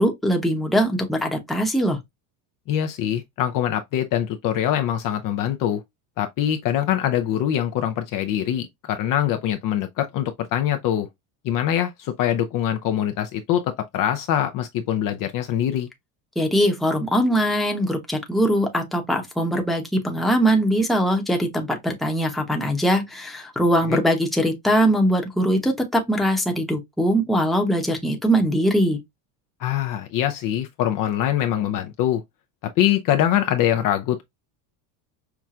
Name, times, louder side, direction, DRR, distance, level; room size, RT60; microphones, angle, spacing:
voice 1, 0.0-2.0 16.4-29.0, equal, ahead, 0.9 m, -21 dB
voice 2, 2.7-5.8 6.2-11.1 11.4-15.9 23.9-24.0 29.6-32.2 32.8-34.2, left 11 dB, 45° left, 0.6 m, -23 dB
5.8 x 2.2 x 2.4 m
cardioid pair, 140°, 47 cm